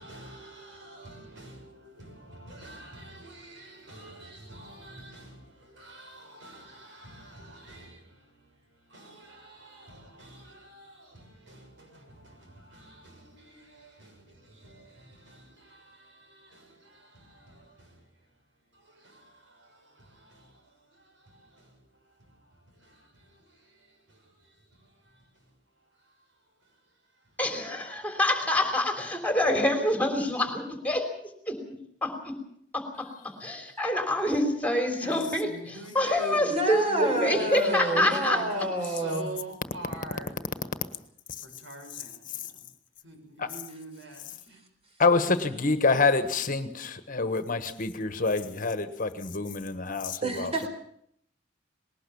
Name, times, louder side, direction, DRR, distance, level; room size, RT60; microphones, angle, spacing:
voice 1, 0.0-18.4 18.7-27.4 35.0-40.6 41.3-42.7 43.0-44.6, right 1 dB, 80° right, 6.7 m, -46 dB
voice 2, 27.4-31.0 31.5-31.6 32.0-32.4 32.7-38.4, left 1 dB, 10° left, 3.4 m, -27 dB
voice 3, 36.5-39.3 50.2-50.7, right 1 dB, 35° right, 4.1 m, -28 dB
voice 4, 45.0-50.5, left 3 dB, 45° left, 1.4 m, -26 dB
20.5 x 18.5 x 7.1 m
head